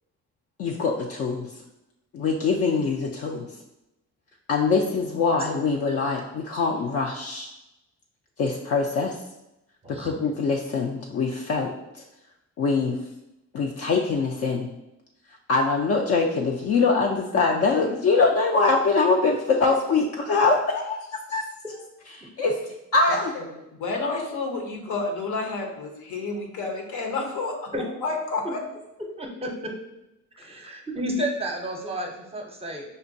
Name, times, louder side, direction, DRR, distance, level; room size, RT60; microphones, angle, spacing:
voice 1, 0.6-1.5 2.1-3.5 4.5-7.5 8.4-9.1 9.9-11.7 12.6-13.0 13.5-14.7 15.5-21.6 22.4-22.6 22.9-23.3, left 4 dB, 55° left, 1 dB, 0.4 m, -23 dB
voice 2, 23.8-27.7 28.0-28.6, left 3 dB, 80° left, 1 dB, 0.9 m, -30 dB
voice 3, 29.2-29.7 30.4-32.8, equal, 20° right, 1 dB, 0.6 m, -31 dB
5.1 x 2.2 x 2.6 m, 0.90 s
cardioid pair, 90°, 30 cm